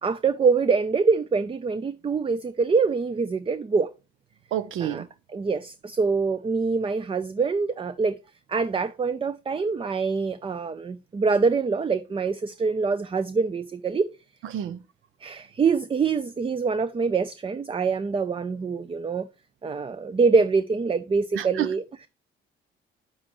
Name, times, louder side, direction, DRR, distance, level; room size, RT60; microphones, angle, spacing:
voice 1, 0.0-3.9 4.8-5.0 5.3-8.2 8.5-14.1 15.2-19.3 19.6-22.1, right 4 dB, 25° right, 0.5 m, -25 dB
voice 2, 4.5-5.1 14.4-14.8 21.3-21.7, right 11 dB, 75° right, 0.6 m, -29 dB
8.6 x 7.3 x 3.1 m
supercardioid pair, 75°, 21 cm